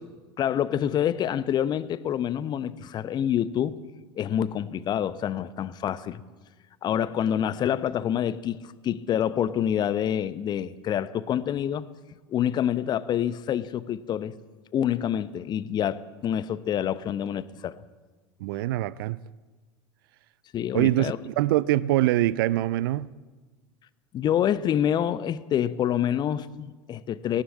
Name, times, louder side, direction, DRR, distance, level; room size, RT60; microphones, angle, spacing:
voice 1, 0.4-3.8 4.2-6.2 6.8-11.9 12.3-14.3 14.7-17.8 20.5-21.2 24.1-27.4, left 10 dB, 30° left, 0.8 m, -27 dB
voice 2, 18.4-19.2 20.7-23.1, right 15 dB, 55° right, 0.6 m, -24 dB
18.5 x 16.5 x 8.6 m
figure-of-eight pair, 75°, 14 cm